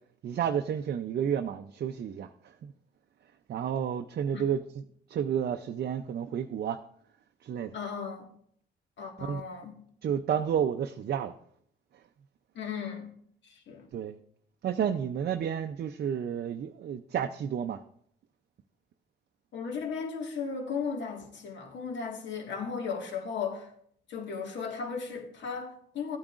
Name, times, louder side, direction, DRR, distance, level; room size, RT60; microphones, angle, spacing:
voice 1, 0.2-2.7 3.5-4.8 5.1-6.8 7.4-7.8 9.2-9.4 10.0-11.3 13.9-14.2 14.6-17.8, right 8 dB, 55° right, 0.5 m, -31 dB
voice 2, 7.7-8.3 9.0-9.8 12.6-13.1 13.4-13.9 19.5-23.7 24.1-26.2, left 5 dB, 65° left, 1.8 m, -36 dB
15.0 x 8.7 x 2.5 m
cardioid pair, 90°, 20 cm